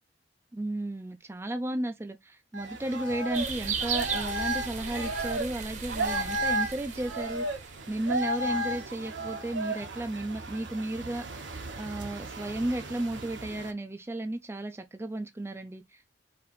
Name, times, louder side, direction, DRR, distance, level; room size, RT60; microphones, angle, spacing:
voice 1, 0.5-11.2 11.8-16.2, right 1 dB, 15° right, 0.4 m, -34 dB
sound 1, 2.5-13.7, right 1 dB, 85° right, 1.2 m, -34 dB
sound 2, 3.3-8.3, right 6 dB, 40° right, 0.8 m, -36 dB
4.8 x 2.9 x 3.0 m
head